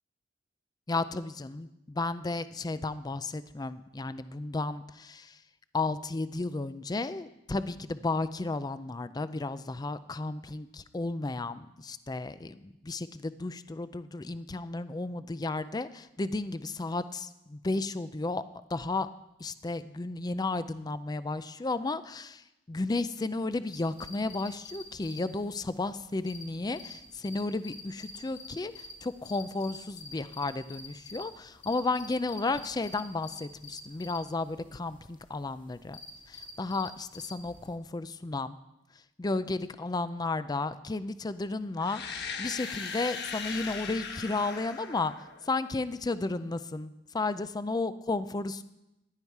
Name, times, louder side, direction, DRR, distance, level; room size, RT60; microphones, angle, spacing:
voice 1, 0.9-5.4 5.7-18.4 18.7-19.1 19.4-36.0 36.3-38.6 39.2-45.1 45.4-48.6, left 3 dB, 20° left, 13 dB, 0.4 m, -33 dB
sound 1, 23.7-37.7, left 2 dB, 45° left, 2.0 m, -48 dB
sound 2, 41.8-45.7, left 5 dB, 65° left, 1.3 m, -39 dB
15.5 x 11.0 x 4.7 m, 0.92 s
head